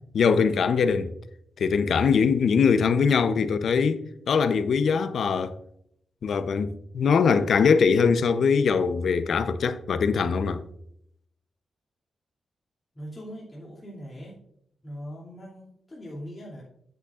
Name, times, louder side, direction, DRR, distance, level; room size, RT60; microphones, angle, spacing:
voice 1, 0.1-1.1 1.6-5.5 6.2-10.6, left 5 dB, 70° left, 0.6 m, -22 dB
voice 2, 12.9-14.4 14.8-16.6, equal, 25° left, 2.7 m, -40 dB
8.8 x 8.1 x 2.4 m
cardioid pair, 75°, 0 cm